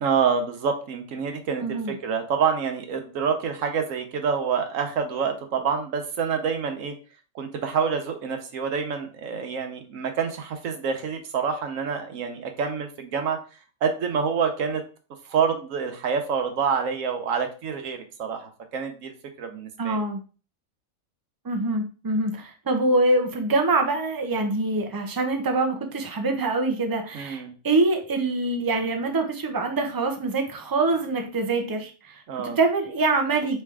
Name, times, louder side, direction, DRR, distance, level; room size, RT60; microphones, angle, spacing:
voice 1, 0.0-6.9 7.3-13.4 13.8-14.8 15.3-20.0 27.1-27.5 32.3-32.6, right 6 dB, 70° right, 5 dB, 1.2 m, -27 dB
voice 2, 1.6-1.9 19.8-20.2 21.4-33.6, right 2 dB, 35° right, 4 dB, 0.3 m, -25 dB
4.4 x 3.2 x 3.5 m, 0.36 s
omnidirectional pair, 1.4 m